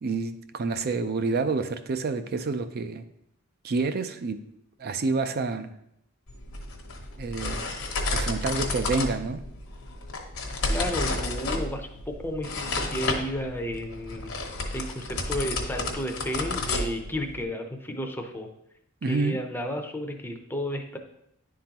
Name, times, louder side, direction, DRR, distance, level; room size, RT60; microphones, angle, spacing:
voice 1, 0.0-3.0 3.6-4.4 4.8-5.7 7.2-7.7 8.1-9.4 19.0-19.4, right 4 dB, 50° right, 10 dB, 0.4 m, -28 dB
sound 1, 6.3-17.5, left 2 dB, 75° left, 1.0 m, -31 dB
voice 2, 10.7-14.3 14.7-18.5 19.1-21.0, equal, 10° left, 4 dB, 0.6 m, -32 dB
10.0 x 3.8 x 2.9 m, 0.77 s
head